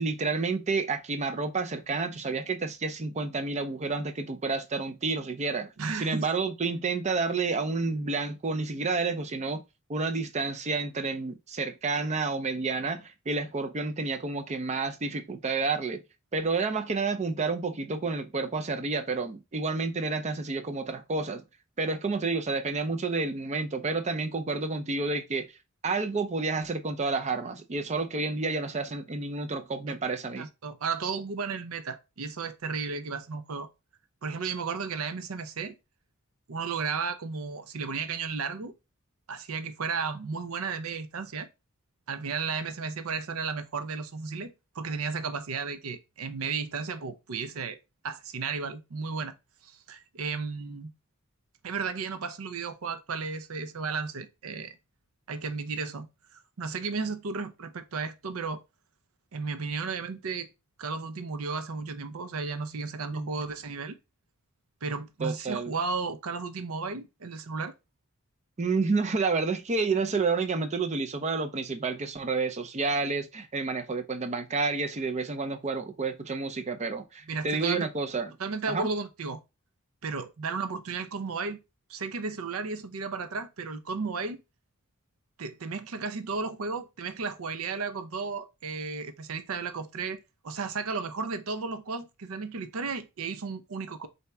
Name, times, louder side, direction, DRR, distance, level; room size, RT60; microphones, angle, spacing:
voice 1, 0.0-5.7 6.0-9.6 9.9-16.0 16.3-21.4 21.8-25.5 25.8-30.5 63.1-63.3 65.2-65.7 68.6-78.3 78.7-78.9, right 4 dB, 35° right, 0.5 m, -30 dB
voice 2, 5.8-6.3 30.4-33.7 34.2-35.7 36.5-38.7 39.3-41.5 42.1-47.8 48.0-49.3 49.6-50.9 51.6-54.8 55.3-56.1 56.3-58.6 59.3-60.5 60.8-64.0 64.8-67.7 77.3-77.9 78.4-79.4 80.0-81.6 81.9-84.4 85.4-94.1, right 4 dB, 75° right, 0.6 m, -34 dB
4.3 x 2.7 x 3.4 m
head